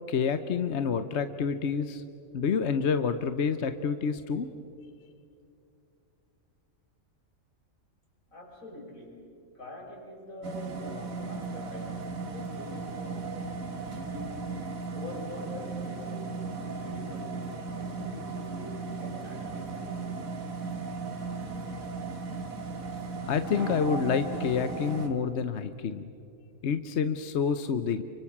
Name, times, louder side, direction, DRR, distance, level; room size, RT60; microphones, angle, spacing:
voice 1, 0.1-2.0 2.3-4.5 23.3-26.1 26.6-28.0, left 6 dB, 60° left, 10 dB, 1.1 m, -28 dB
voice 2, 8.3-9.2 9.5-11.9 12.3-13.4 13.8-14.5 14.9-16.1 16.6-17.3 17.8-19.8 21.3-21.7, left 1 dB, 85° left, -2 dB, 6.6 m, -44 dB
sound 1, 10.4-25.1, right 4 dB, 90° right, 2.2 m, -36 dB
29.5 x 25.0 x 7.3 m, 2.6 s
omnidirectional pair, 1.4 m